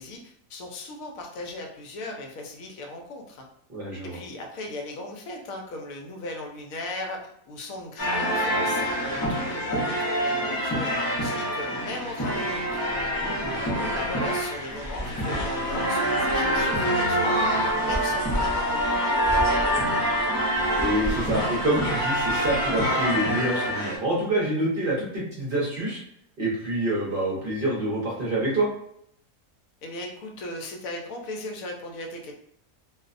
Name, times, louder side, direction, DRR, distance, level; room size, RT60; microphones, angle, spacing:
voice 1, 0.0-3.5 4.0-13.0 13.5-19.8 29.8-32.3, left 2 dB, 75° left, 1 dB, 1.0 m, -37 dB
voice 2, 3.7-4.2 13.2-14.0 17.4-17.6 20.8-26.0 26.4-28.7, right 1 dB, 45° right, -5 dB, 0.8 m, -27 dB
sound 1, 8.0-24.0, equal, 25° left, 0.4 m, -26 dB
2.6 x 2.1 x 2.4 m, 0.71 s
omnidirectional pair, 1.5 m